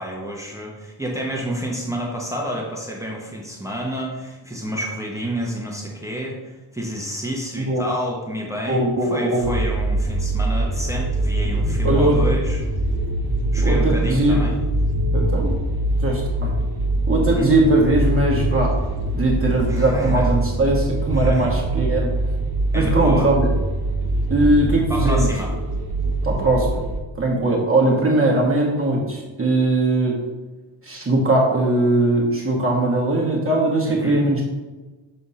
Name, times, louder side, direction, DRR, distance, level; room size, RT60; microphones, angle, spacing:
voice 1, 0.0-12.6 13.5-14.6 17.3-17.5 19.7-20.3 21.1-21.5 22.7-23.3 24.9-25.5 33.9-34.2, equal, 5° right, -2 dB, 1.0 m, -29 dB
voice 2, 8.7-9.5 11.8-12.2 13.6-14.5 15.1-15.6 16.0-16.5 17.1-18.8 19.1-22.1 22.7-23.5 24.3-25.3 26.2-26.8 27.2-30.2 30.8-34.4, right 2 dB, 25° right, -4 dB, 1.2 m, -20 dB
sound 1, 9.4-27.0, right 1 dB, 50° right, 1.2 m, -23 dB
6.5 x 3.4 x 5.6 m, 1.2 s
wide cardioid pair, 135°, 49 cm